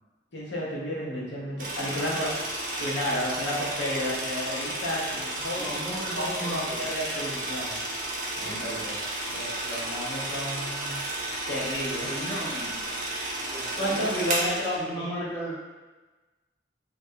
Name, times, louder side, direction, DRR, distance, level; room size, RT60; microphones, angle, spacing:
voice 1, 0.3-2.3 2.8-5.7 6.2-7.8 8.4-9.0 9.3-11.0 11.5-12.1 13.8-15.3, equal, 85° left, -5 dB, 0.7 m, -32 dB
sound 1, 1.6-14.8, right 1 dB, 45° right, 0.4 m, -32 dB
voice 2, 5.6-6.9 8.4-8.8 11.8-12.8 13.4-15.6, right 1 dB, 15° left, -7 dB, 0.4 m, -36 dB
2.3 x 2.1 x 2.7 m, 1.2 s
head